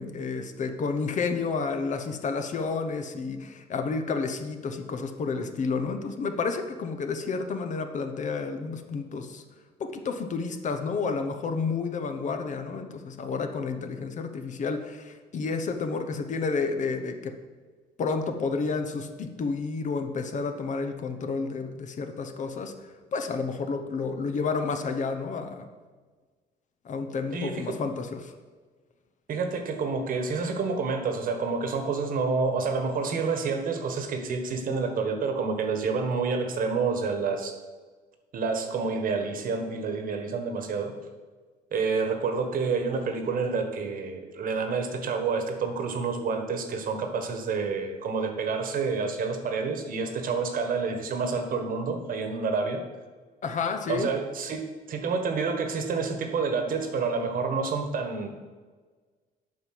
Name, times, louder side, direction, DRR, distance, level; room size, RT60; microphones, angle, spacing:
voice 1, 0.0-9.4 9.8-17.3 18.0-22.7 23.1-25.7 26.8-28.3 53.4-54.1, left 4 dB, 45° left, 7 dB, 1.0 m, -30 dB
voice 2, 27.3-27.8 29.3-37.5 38.3-40.9 41.7-52.8 53.9-58.3, right 4 dB, 55° right, 6 dB, 1.4 m, -28 dB
7.8 x 5.4 x 7.6 m, 1.4 s
cardioid pair, 110°, 17 cm